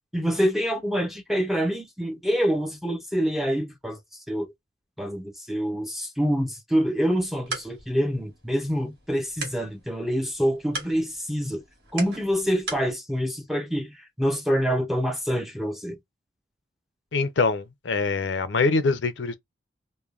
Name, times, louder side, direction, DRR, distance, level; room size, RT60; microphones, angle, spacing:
voice 1, 0.1-4.0 4.3-4.5 5.0-11.6 11.9-16.0, equal, ahead, 0.5 m, -26 dB
sound 1, 7.1-12.9, right 3 dB, 65° right, 1.6 m, -40 dB
voice 2, 17.1-19.3, left 4 dB, 85° left, 0.5 m, -24 dB
3.1 x 2.1 x 2.4 m
head